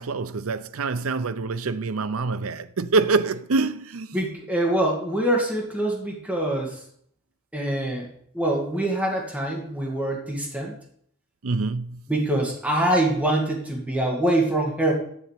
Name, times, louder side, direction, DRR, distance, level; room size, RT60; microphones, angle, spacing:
voice 1, 0.0-4.2 11.4-12.0, right 3 dB, 75° right, 0.6 m, -25 dB
voice 2, 4.1-6.8 7.5-8.1 8.3-10.7 12.1-14.9, right 1 dB, 5° right, 2.0 m, -24 dB
7.3 x 7.0 x 8.2 m
head